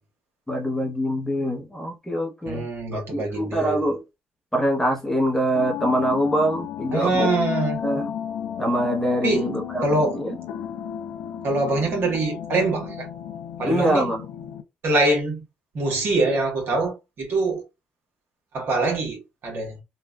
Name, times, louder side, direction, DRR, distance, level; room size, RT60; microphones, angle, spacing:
voice 1, 0.5-4.0 4.5-7.3 7.8-8.1 8.6-10.4 13.6-14.2, equal, 10° left, 0.8 m, -24 dB
voice 2, 2.4-3.8 6.9-7.8 9.2-9.5 9.8-10.1 11.4-13.1 13.6-14.1 14.8-15.4 15.7-17.6 18.5-19.8, right 2 dB, 60° right, 1.4 m, -24 dB
sound 1, 5.5-14.6, left 10 dB, 80° left, 0.4 m, -33 dB
3.1 x 2.4 x 2.2 m
supercardioid pair, 75°, 4 cm